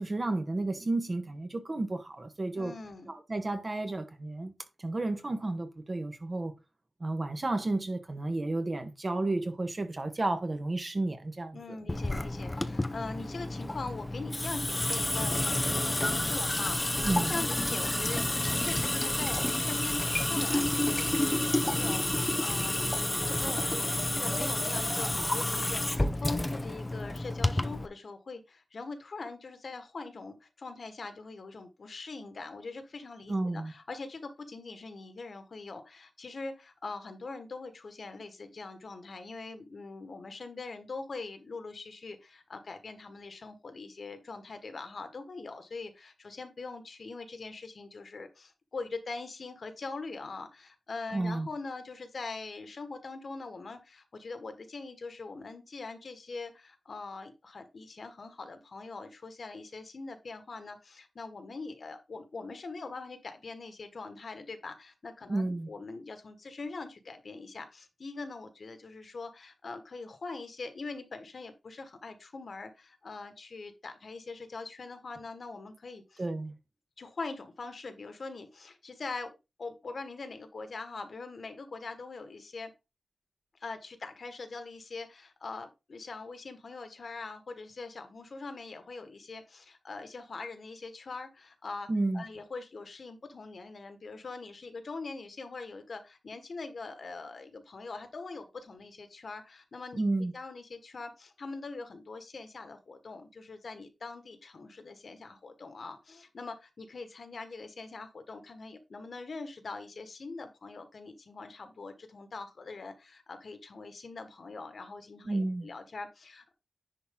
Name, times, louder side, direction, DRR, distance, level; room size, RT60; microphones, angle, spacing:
voice 1, 0.0-2.7 3.1-4.5 4.8-6.5 7.0-11.6 17.0-17.3 33.3-33.7 51.1-51.5 65.3-65.7 76.2-76.5 91.9-92.2 99.9-100.3 115.2-115.7, right 2 dB, 30° right, 1.4 m, -32 dB
voice 2, 2.5-3.1 11.5-22.8 23.4-76.2 77.0-82.7 83.6-91.9 92.1-100.0 100.3-116.5, left 3 dB, 55° left, 1.5 m, -42 dB
Water tap faucet / Sink (filling or washing) / Drip, 11.9-27.9, left 1 dB, 15° left, 0.7 m, -30 dB
10.5 x 4.4 x 3.8 m
wide cardioid pair, 125°, 0 cm